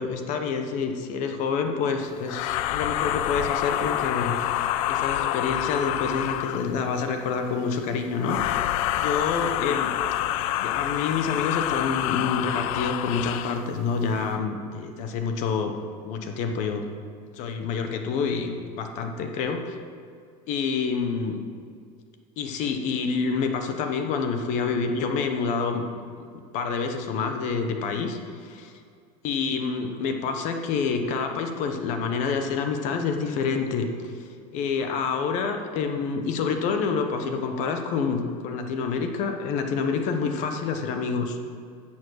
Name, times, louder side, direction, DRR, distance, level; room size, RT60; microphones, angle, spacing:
voice 1, 0.0-8.6 9.0-9.9 10.5-15.7 16.0-16.8 17.3-19.6 20.5-21.4 22.4-25.8 26.2-26.3 26.5-28.7 29.2-34.1 34.5-41.4, left 5 dB, 40° left, 5 dB, 1.0 m, -27 dB
sound 1, 2.3-6.8 8.2-13.7, left 13 dB, 65° left, 0.4 m, -27 dB
11.0 x 7.4 x 6.4 m, 2.2 s
cardioid pair, 180°, 19 cm